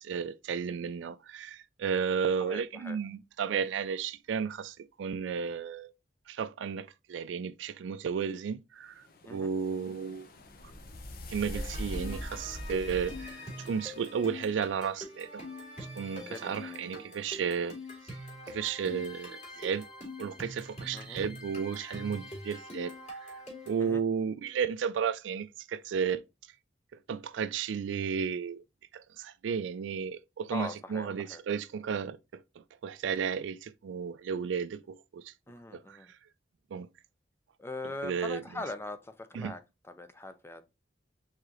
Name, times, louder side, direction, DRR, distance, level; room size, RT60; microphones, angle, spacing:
voice 1, 0.0-5.9 6.3-10.3 11.3-15.4 16.0-17.8 18.5-19.8 20.2-22.9 23.7-26.2 27.1-28.6 28.9-35.3 35.7-36.0 36.7-36.9 38.0-38.4 39.3-39.5, right 6 dB, 80° right, 0.3 m, -33 dB
voice 2, 2.4-3.0 9.2-9.5 16.2-16.8 20.9-21.2 23.8-24.0 30.5-31.4 35.5-36.1 37.6-40.6, left 2 dB, 15° left, 0.5 m, -41 dB
sound 1, 9.0-14.3, left 1 dB, 55° left, 0.7 m, -42 dB
sound 2, 11.5-23.9, left 1 dB, 35° left, 2.5 m, -44 dB
4.8 x 3.7 x 2.9 m
head